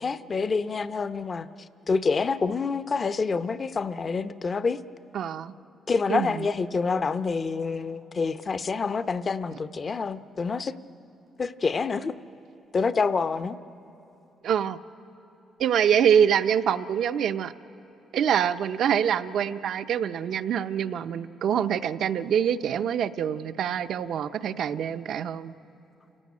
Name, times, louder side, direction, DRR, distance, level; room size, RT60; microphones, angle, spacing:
voice 1, 0.0-1.5 1.9-4.8 5.9-10.7 11.4-12.1 12.7-13.6, left 4 dB, 40° left, 12 dB, 0.7 m, -27 dB
voice 2, 5.1-5.5 6.1-6.5 14.4-14.8 15.6-17.5 18.1-25.5, right 8 dB, 70° right, 9 dB, 0.7 m, -25 dB
29.0 x 16.5 x 9.5 m, 3.0 s
cardioid pair, 90°, 0 cm